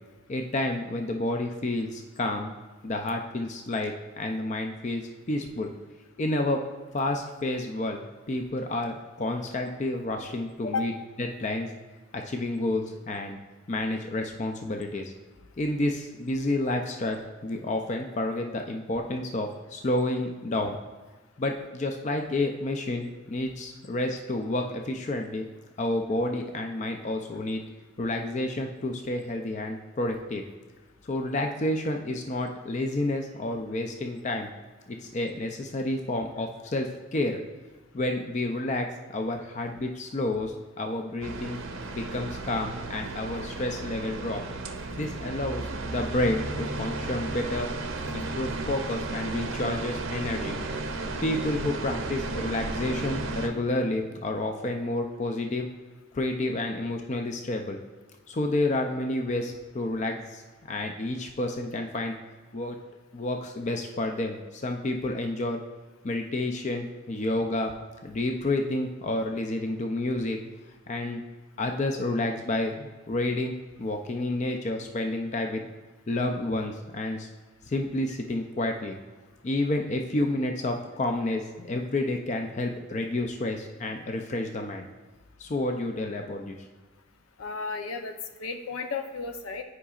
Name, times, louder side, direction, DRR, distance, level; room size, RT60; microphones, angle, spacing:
voice 1, 0.3-2.5 2.8-5.7 6.2-6.6 6.9-10.9 11.4-11.7 12.1-13.4 13.7-15.1 15.6-20.8 21.4-25.4 25.8-27.6 28.0-30.4 31.0-34.5 35.0-37.4 37.9-41.6 41.9-44.4 44.9-47.7 48.1-50.6 51.2-55.7 56.1-57.8 58.3-62.2 62.5-62.8 63.1-65.6 66.0-67.7 68.0-70.4 70.9-71.2 71.6-73.5 73.8-75.6 76.1-77.3 77.7-79.0 79.4-84.9 85.4-86.6, left 2 dB, 35° left, 4 dB, 0.4 m, -30 dB
sound 1, 41.2-53.5, right 2 dB, 70° right, 0.7 m, -34 dB
voice 2, 87.4-88.1 88.4-89.6, left 4 dB, 80° left, 6 dB, 0.7 m, -33 dB
9.8 x 4.9 x 2.4 m, 1.3 s
head